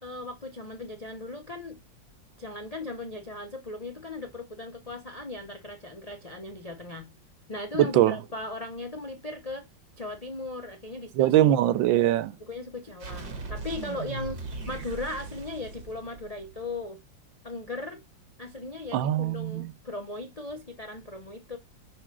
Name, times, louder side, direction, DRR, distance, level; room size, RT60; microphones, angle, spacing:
voice 1, 0.0-1.8 2.4-7.1 7.5-9.7 10.0-11.4 12.4-17.0 17.4-18.0 18.4-21.6, left 2 dB, 30° left, 0.7 m, -37 dB
voice 2, 7.8-8.1 11.2-12.4 18.9-19.7, right 13 dB, 85° right, 1.4 m, -22 dB
sound 1, 13.0-16.7, right 3 dB, 70° right, 2.5 m, -38 dB
5.6 x 4.9 x 6.0 m
omnidirectional pair, 2.0 m